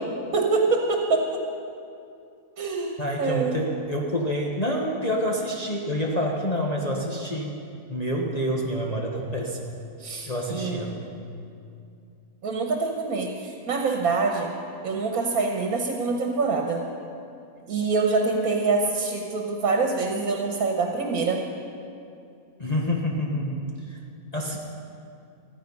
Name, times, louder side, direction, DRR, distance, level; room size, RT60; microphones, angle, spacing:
voice 1, 0.3-1.4 2.6-3.5 10.0-10.9 12.4-14.5 14.8-16.8 17.7-21.4, right 4 dB, 80° right, 2 dB, 1.6 m, -25 dB
voice 2, 3.0-7.6 7.9-9.8 10.3-11.1 22.6-24.0 24.3-24.6, equal, 30° left, -2 dB, 1.2 m, -28 dB
14.5 x 14.0 x 5.4 m, 2.5 s
omnidirectional pair, 1.5 m